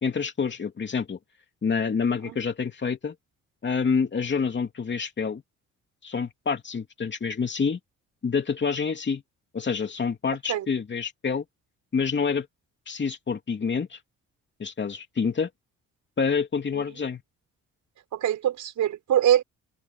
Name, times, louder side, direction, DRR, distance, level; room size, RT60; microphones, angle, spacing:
voice 1, 0.0-1.2 1.6-3.1 3.6-5.4 6.0-7.8 8.2-9.2 9.5-11.4 11.9-12.5 12.9-14.0 14.6-15.5 16.2-17.2, left 5 dB, 40° left, 2.8 m, -27 dB
voice 2, 18.1-19.4, right 11 dB, 75° right, 5.6 m, -23 dB
open air
cardioid pair, 90°, 30 cm